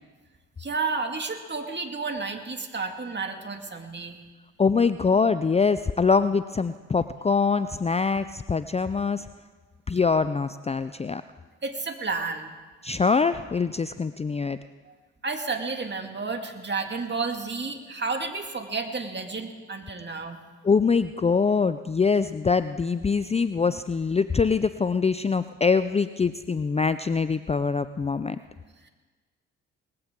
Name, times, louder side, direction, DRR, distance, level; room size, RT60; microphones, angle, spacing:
voice 1, 0.6-4.2 11.6-12.5 14.9-15.0 15.2-20.4, right 4 dB, 30° right, 5 dB, 2.3 m, -31 dB
voice 2, 4.6-9.3 9.9-11.2 12.8-14.6 20.6-28.4, left 5 dB, 20° left, 13 dB, 0.5 m, -24 dB
20.0 x 15.5 x 3.8 m, 1.3 s
hypercardioid pair, 45°, 33 cm